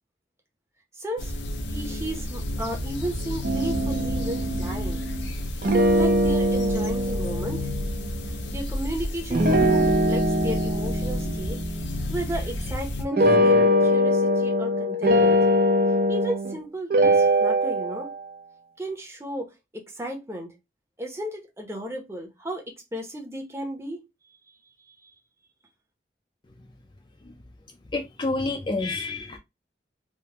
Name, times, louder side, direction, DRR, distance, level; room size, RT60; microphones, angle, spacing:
voice 1, 0.9-1.3 1.7-5.0 5.9-7.7 8.2-11.6 12.1-15.4 16.1-18.1 18.8-20.5 21.0-22.6 22.9-24.6 24.9-25.1, right 1 dB, 15° right, 0.7 m, -34 dB
sound 1, 1.2-13.1, left 1 dB, 85° left, 0.6 m, -31 dB
sound 2, 3.4-5.3 5.6-8.1 9.3-12.7 13.1-16.6 16.9-18.2, equal, 55° right, 0.6 m, -22 dB
voice 2, 27.9-29.4, left 3 dB, 25° left, 0.4 m, -28 dB
3.4 x 2.1 x 2.8 m
head